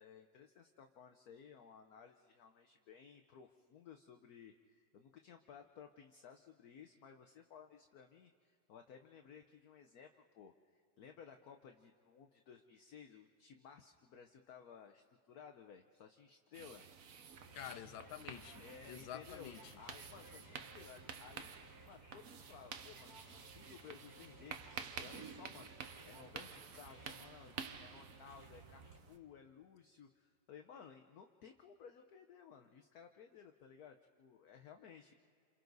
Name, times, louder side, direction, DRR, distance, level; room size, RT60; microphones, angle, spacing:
voice 1, 0.0-16.9 18.6-21.5 21.8-35.1, left 7 dB, 60° left, 5 dB, 1.2 m, -58 dB
sound 1, 16.5-29.2, right 7 dB, 55° right, 1.1 m, -51 dB
sound 2, 17.3-29.0, right 2 dB, 20° right, 2.3 m, -59 dB
voice 2, 17.5-19.8, left 11 dB, 85° left, 12 dB, 1.6 m, -49 dB
29.0 x 28.5 x 4.0 m, 2.4 s
omnidirectional pair, 2.1 m